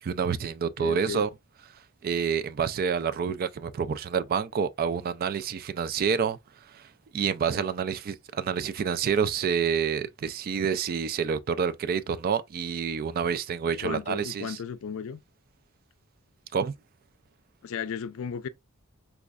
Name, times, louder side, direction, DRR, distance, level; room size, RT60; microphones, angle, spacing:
voice 1, 0.0-1.3 2.0-6.4 6.7-14.6 16.5-16.7, right 6 dB, 45° right, 0.3 m, -28 dB
voice 2, 0.8-1.2 13.8-15.2 17.6-18.5, left 7 dB, 65° left, 0.4 m, -35 dB
5.0 x 2.4 x 2.3 m
head